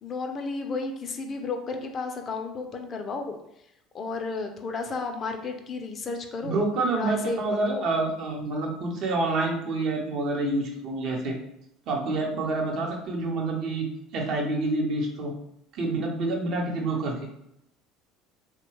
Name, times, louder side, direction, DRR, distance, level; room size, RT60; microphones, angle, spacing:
voice 1, 0.0-3.4 3.9-6.6 6.9-7.9, left 3 dB, 40° left, 4 dB, 0.4 m, -33 dB
voice 2, 6.4-11.4 11.9-15.3 15.7-17.3, right 2 dB, 55° right, 0 dB, 0.7 m, -28 dB
2.7 x 2.1 x 3.0 m, 0.78 s
hypercardioid pair, 65°, 0 cm